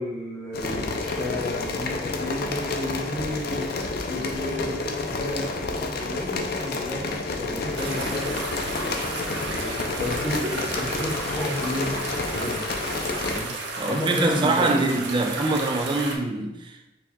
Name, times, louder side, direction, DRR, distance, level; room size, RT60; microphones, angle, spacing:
voice 1, 0.0-7.1 7.4-8.3 8.8-12.0 12.3-12.7 13.3-13.5 13.9-15.3, left 1 dB, 5° left, 0.7 m, -32 dB
sound 1, 0.5-13.4, left 3 dB, 60° left, 0.4 m, -30 dB
sound 2, 7.8-16.2, right 2 dB, 85° right, 0.5 m, -33 dB
voice 2, 13.8-16.9, right 2 dB, 25° right, 0.3 m, -24 dB
4.4 x 2.8 x 2.2 m
head